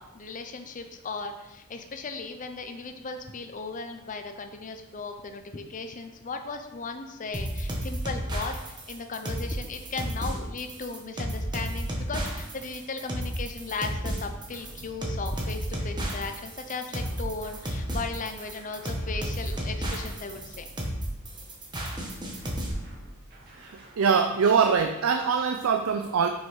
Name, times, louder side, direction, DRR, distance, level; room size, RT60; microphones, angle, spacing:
voice 1, 0.0-20.7, left 4 dB, 40° left, 6 dB, 0.6 m, -37 dB
sound 1, 7.3-22.7, equal, 20° right, 1.3 m, -32 dB
sound 2, 14.5-16.2 17.0-21.1 21.9-24.4, right 1 dB, 50° right, 2.0 m, -49 dB
voice 2, 23.6-26.3, right 6 dB, 75° right, 6 dB, 0.4 m, -23 dB
6.1 x 5.6 x 4.7 m, 0.98 s
head